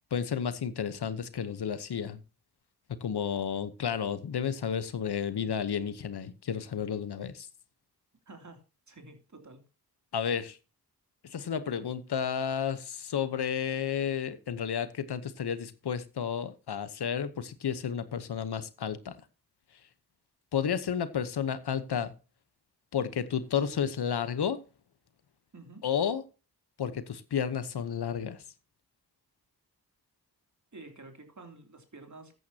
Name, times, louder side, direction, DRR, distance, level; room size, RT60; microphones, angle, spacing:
voice 1, 0.1-2.2 3.0-7.5 10.1-10.6 11.3-19.1 20.5-22.1 22.9-24.6 25.8-26.2 26.8-28.4, left 8 dB, 80° left, 1.0 m, -32 dB
voice 2, 8.3-8.6 8.9-9.6 25.5-25.8 30.7-32.3, right 2 dB, 50° right, 3.0 m, -49 dB
14.0 x 9.4 x 2.8 m
cardioid pair, 50°, 39 cm